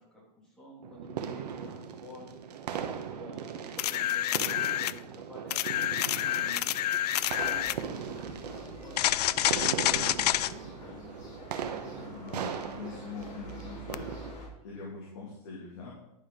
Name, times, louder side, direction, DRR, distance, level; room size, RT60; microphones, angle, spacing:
voice 1, 0.0-2.4 3.1-6.7 7.1-11.3, left 1 dB, 5° left, -5 dB, 2.0 m, -51 dB
sound 1, 0.8-14.3, right 7 dB, 75° right, 1.1 m, -39 dB
sound 2, 3.8-5.0 5.5-7.8 9.0-10.5 13.9-14.0, left 13 dB, 75° left, 0.4 m, -28 dB
sound 3, 7.2-14.5, equal, 20° left, 3.0 m, -47 dB
voice 2, 11.8-14.1 14.6-15.9, left 4 dB, 45° left, -4 dB, 2.1 m, -43 dB
10.5 x 4.8 x 5.3 m, 0.83 s
supercardioid pair, 175°, 21 cm